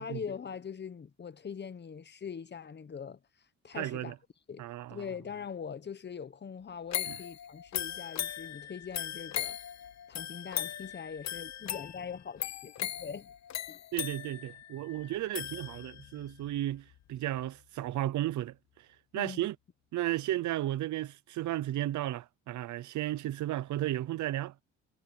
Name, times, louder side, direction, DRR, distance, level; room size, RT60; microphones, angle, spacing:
voice 1, 0.0-3.2 3.6-4.1 4.5-9.6 10.1-13.3 13.7-13.8 15.4-15.5 19.1-19.5, left 6 dB, 35° left, 1.2 m, -42 dB
voice 2, 3.7-4.1 4.6-5.0 7.1-7.2 13.9-18.6 19.1-19.5 19.9-24.5, right 14 dB, 75° right, 0.8 m, -34 dB
sound 1, 6.9-16.2 16.6-16.7, left 11 dB, 60° left, 1.2 m, -38 dB
sound 2, 15.4-19.9, left 13 dB, 80° left, 2.8 m, -61 dB
cardioid pair, 90°, 30 cm